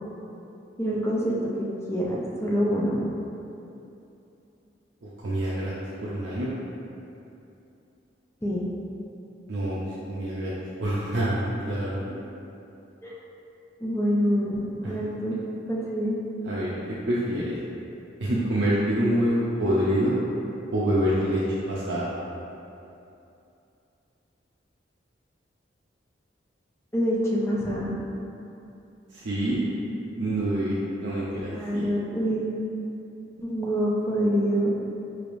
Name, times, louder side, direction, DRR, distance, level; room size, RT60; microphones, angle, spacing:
voice 1, 0.8-3.0 8.4-8.7 13.0-13.1 13.8-15.4 15.7-16.2 26.9-27.9 31.5-32.5 33.4-34.7, equal, 15° left, -5 dB, 0.5 m, -26 dB
voice 2, 5.0-5.7 6.0-6.5 9.5-10.5 10.8-12.0 14.8-14.9 16.4-17.5 18.2-20.2 20.7-21.4 21.7-22.1 29.1-29.6 30.2-31.9, right 1 dB, 70° right, -8 dB, 0.5 m, -26 dB
4.7 x 3.3 x 2.5 m, 2.8 s
head